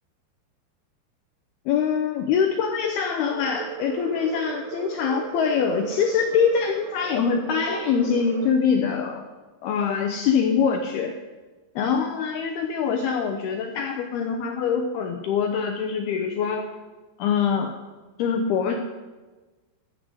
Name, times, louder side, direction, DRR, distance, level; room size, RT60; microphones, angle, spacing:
voice 1, 1.7-9.3 9.6-11.2 11.8-16.7 17.2-17.8 18.2-18.8, left 6 dB, 75° left, 4 dB, 2.3 m, -24 dB
sound 1, 3.3-8.5, right 9 dB, 80° right, 3.0 m, -36 dB
13.0 x 7.8 x 8.0 m, 1.2 s
omnidirectional pair, 5.4 m